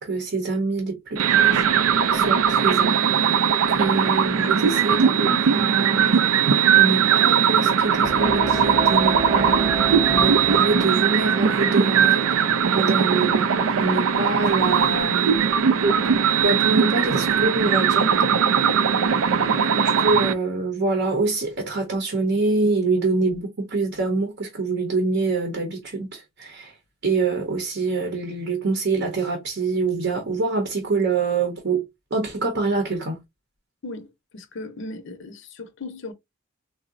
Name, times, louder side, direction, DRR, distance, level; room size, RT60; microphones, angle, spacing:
voice 1, 0.0-3.4 3.7-6.2 6.7-15.4 16.4-18.2 19.7-26.8 27.0-31.8 32.1-33.2, right 3 dB, 55° right, 0.7 m, -25 dB
sound 1, 1.2-20.3, right 7 dB, 75° right, 0.4 m, -19 dB
sound 2, 8.0-13.1, right 2 dB, 20° right, 0.5 m, -31 dB
voice 2, 33.8-36.1, left 2 dB, 60° left, 0.6 m, -37 dB
3.6 x 2.0 x 2.4 m
head